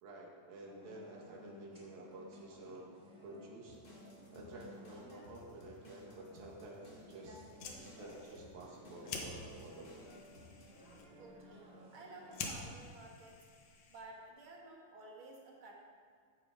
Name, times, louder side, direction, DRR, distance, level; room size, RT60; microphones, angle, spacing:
voice 1, 0.0-2.9 3.2-3.8 4.3-7.4 7.8-10.1, right 2 dB, 85° right, -2 dB, 3.7 m, -51 dB
sound 1, 0.6-12.8, left 1 dB, 20° right, 2.0 m, -57 dB
sound 2, 3.7-10.8, left 1 dB, 30° left, 2.3 m, -59 dB
Fire, 7.4-14.3, left 4 dB, 75° left, 2.8 m, -49 dB
voice 2, 11.2-13.4 13.9-15.8, right 2 dB, 45° right, -2 dB, 2.2 m, -54 dB
15.0 x 8.9 x 4.9 m, 2.1 s
omnidirectional pair, 4.1 m